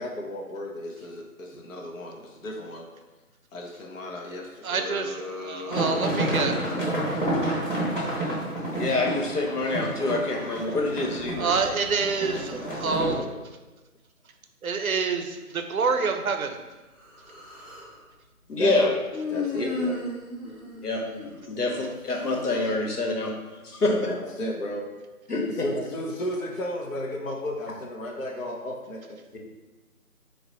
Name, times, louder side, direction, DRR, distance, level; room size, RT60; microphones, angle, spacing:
voice 1, 0.0-2.9 3.5-6.2 6.8-7.3 12.6-13.4 18.6-19.0 19.3-20.0 21.5-21.6 23.8-24.9 25.5-29.2, left 1 dB, 60° left, 0 dB, 0.6 m, -35 dB
voice 2, 4.6-6.6 11.4-13.3 14.6-16.6, right 5 dB, 65° right, 5 dB, 0.5 m, -27 dB
sound 1, 5.7-13.1, right 1 dB, 35° left, 1.0 m, -29 dB
voice 3, 8.7-11.5 18.5-18.9 19.6-19.7 20.8-21.0 21.5-23.3 23.6-24.1 25.3-25.4 29.3-29.4, left 2 dB, 90° left, 0 dB, 1.0 m, -26 dB
Human voice, 17.0-18.0 19.1-21.8, left 3 dB, ahead, 0.5 m, -34 dB
4.0 x 2.0 x 3.8 m, 1.2 s
figure-of-eight pair, 170°, 46 cm